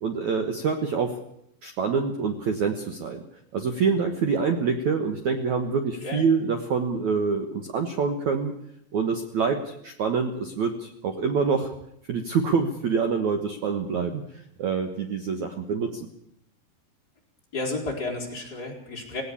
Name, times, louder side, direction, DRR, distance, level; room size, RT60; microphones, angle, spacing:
voice 1, 0.0-1.1 1.6-3.2 3.5-8.5 8.9-11.7 12.1-14.2 14.6-16.1, right 5 dB, 70° right, 6 dB, 1.8 m, -26 dB
voice 2, 17.5-19.2, left 2 dB, 20° left, 0 dB, 4.9 m, -32 dB
17.5 x 17.5 x 8.5 m, 0.75 s
omnidirectional pair, 5.2 m